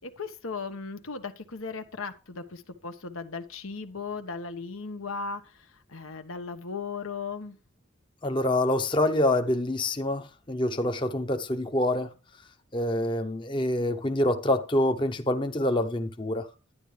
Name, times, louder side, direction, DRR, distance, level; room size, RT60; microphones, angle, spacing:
voice 1, 0.0-7.6, left 4 dB, 90° left, 1.3 m, -37 dB
voice 2, 8.2-12.1 12.7-16.5, left 1 dB, 25° left, 0.7 m, -26 dB
11.0 x 9.9 x 3.3 m
head